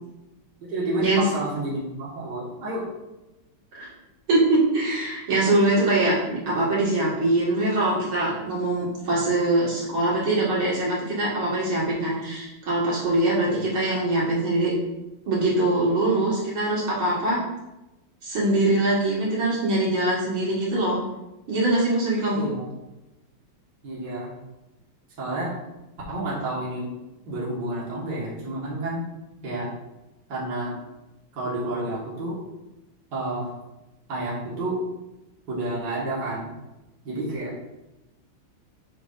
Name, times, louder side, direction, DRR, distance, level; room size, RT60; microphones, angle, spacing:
voice 1, 0.6-2.8 13.4-13.6 22.3-22.7 23.8-24.3 25.2-25.5 26.1-26.9 27.3-29.0 29.4-29.7 30.3-30.7 31.4-32.4 33.1-33.5 34.1-34.8 35.5-36.5 37.0-37.5, right 2 dB, 55° right, -7 dB, 2.2 m, -29 dB
voice 2, 4.3-14.7 15.3-17.4 18.2-21.0 21.5-22.5, right 2 dB, 75° right, -6 dB, 2.8 m, -23 dB
7.1 x 6.0 x 2.6 m, 0.97 s
omnidirectional pair, 2.2 m